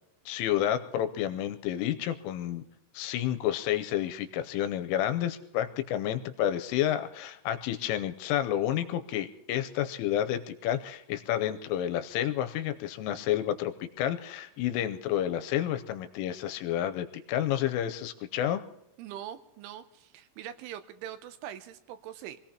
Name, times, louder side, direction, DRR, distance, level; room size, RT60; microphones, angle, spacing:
voice 1, 0.3-2.6 3.0-18.6, left 11 dB, 85° left, 9 dB, 3.3 m, -30 dB
voice 2, 19.0-22.4, right 11 dB, 80° right, 10 dB, 3.0 m, -42 dB
26.0 x 17.5 x 2.9 m, 0.84 s
omnidirectional pair, 5.7 m